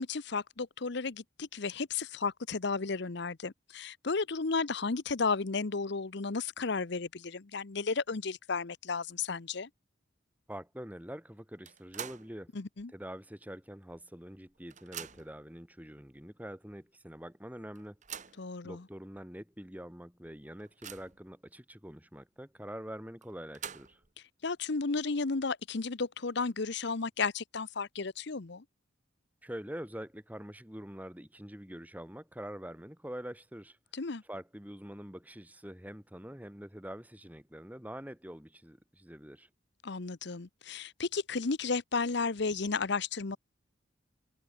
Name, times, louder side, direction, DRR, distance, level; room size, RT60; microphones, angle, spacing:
voice 1, 0.0-9.7 12.5-12.9 18.4-18.8 24.4-28.6 33.9-34.2 39.8-43.4, left 4 dB, 60° left, 0.8 m, -33 dB
voice 2, 10.5-12.5 12.9-18.0 18.6-24.0 29.4-33.8 34.3-39.5, equal, 10° right, 3.0 m, -45 dB
sound 1, 11.6-12.4 12.8-12.9 13.9-14.0 14.3-15.4 16.2-16.3 16.7-16.8 17.7-18.5 19.2-19.3 19.6-19.7 20.2-21.3 23.2-24.1, right 8 dB, 40° right, 1.9 m, -45 dB
head